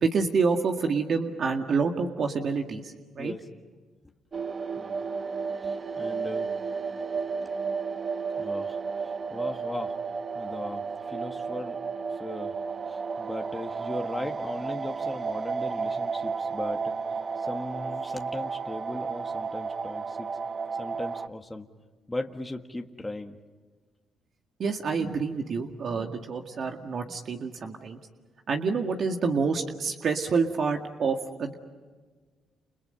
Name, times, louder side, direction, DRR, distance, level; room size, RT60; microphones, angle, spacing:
voice 1, 0.0-3.3 24.6-28.0 28.5-31.5, right 5 dB, 55° right, 4 dB, 2.0 m, -28 dB
voice 2, 3.2-3.5 4.8-5.0 5.6-6.5 8.4-10.0 10.3-11.8 12.1-12.5 12.9-16.9 17.4-20.3 20.8-21.7 22.1-23.4, left 2 dB, 15° left, 3 dB, 1.6 m, -38 dB
sound 1, 4.3-21.3, right 5 dB, 40° right, 0.9 m, -32 dB
29.5 x 29.5 x 5.6 m, 1.4 s
cardioid pair, 90°, 0 cm